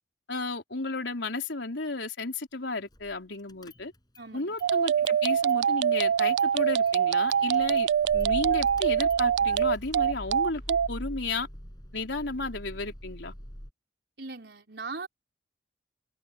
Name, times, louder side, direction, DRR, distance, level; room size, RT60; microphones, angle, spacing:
voice 1, 0.3-3.9 4.3-11.5 11.9-13.3, left 3 dB, 90° left, 3.9 m, -33 dB
Car / Engine starting, 2.9-3.2 3.5-4.3 4.6-5.6 5.9-13.7, equal, 25° left, 6.3 m, -43 dB
voice 2, 4.2-4.5 14.2-15.1, right 3 dB, 65° right, 5.1 m, -39 dB
sound 1, 4.6-10.9, right 8 dB, 85° right, 0.3 m, -24 dB
head